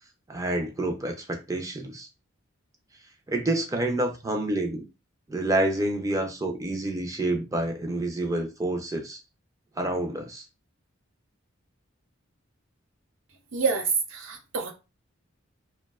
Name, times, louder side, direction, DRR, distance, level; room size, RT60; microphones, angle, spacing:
voice 1, 0.3-2.1 3.3-4.8 5.3-9.2 9.8-10.4, right 1 dB, 15° right, 0.4 m, -28 dB
voice 2, 13.5-14.7, right 5 dB, 65° right, 0.5 m, -27 dB
2.6 x 2.1 x 2.3 m
head